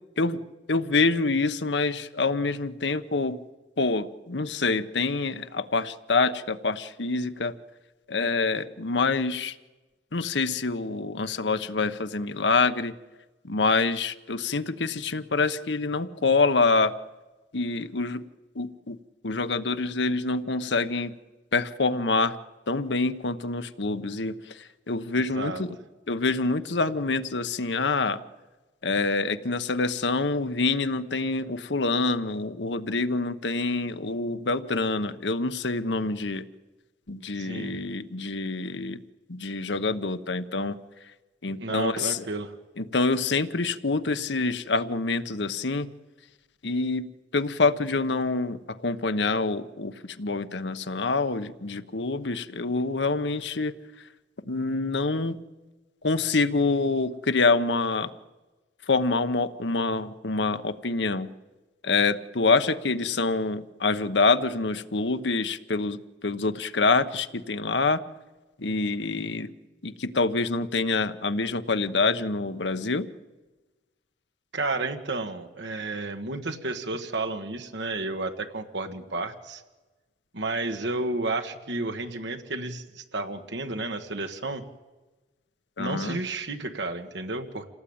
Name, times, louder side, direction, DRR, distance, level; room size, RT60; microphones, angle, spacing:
voice 1, 0.7-3.4 3.8-7.5 8.1-9.5 10.1-12.9 13.4-16.9 17.5-18.2 18.5-19.0 19.2-21.1 21.5-22.4 22.7-25.7 26.1-28.2 28.8-36.4 37.1-39.0 39.3-40.8 41.4-42.2 42.8-45.9 46.6-47.1 47.3-53.7 54.5-55.4 56.0-58.1 58.9-61.3 61.8-68.0 68.6-69.5 69.8-73.1 85.8-86.2, left 3 dB, 85° left, 11 dB, 1.1 m, -26 dB
voice 2, 25.2-25.6 37.4-37.7 41.6-42.5 74.5-79.6 80.3-84.6 85.8-87.7, right 2 dB, 85° right, 6 dB, 1.5 m, -32 dB
27.0 x 18.0 x 8.8 m, 1.2 s
head